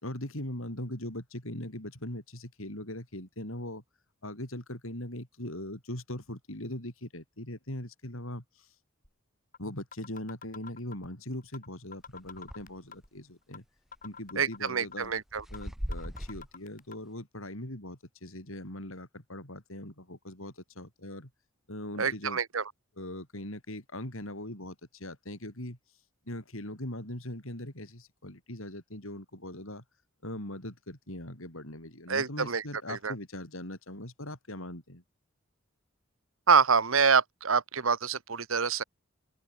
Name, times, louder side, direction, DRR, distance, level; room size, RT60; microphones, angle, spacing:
voice 1, 0.0-3.8 4.2-8.7 9.6-13.6 14.0-15.1 15.5-21.3 21.7-22.4 23.0-25.8 26.3-29.8 30.2-35.0, left 1 dB, 70° left, 6.5 m, -40 dB
sound 1, 9.0-9.1 9.5-9.6 9.9-11.1 11.5-11.7 11.9-13.1 13.5-13.6 13.9-15.1 15.5-15.7 15.9-17.0, left 5 dB, 40° left, 6.9 m, -46 dB
sound 2, 12.1-12.8 13.2-13.3 13.9-14.3 14.9-16.5, equal, ahead, 0.7 m, -39 dB
voice 2, 14.4-15.4 22.0-22.6 32.1-32.6 32.9-33.1 36.5-38.8, right 5 dB, 70° right, 1.3 m, -26 dB
head